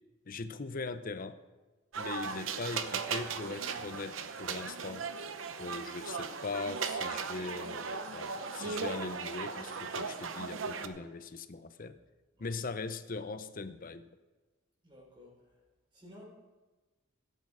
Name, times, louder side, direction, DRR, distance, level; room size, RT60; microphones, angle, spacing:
voice 1, 0.3-1.4 2.0-5.1 5.6-12.0 12.4-14.1, left 3 dB, 45° left, 12 dB, 0.7 m, -40 dB
sound 1, 1.9-10.9, right 5 dB, 75° right, 0.8 m, -37 dB
voice 2, 14.8-15.6 15.9-16.2, left 1 dB, 25° right, -2 dB, 4.2 m, -54 dB
16.0 x 8.5 x 4.9 m, 1.2 s
head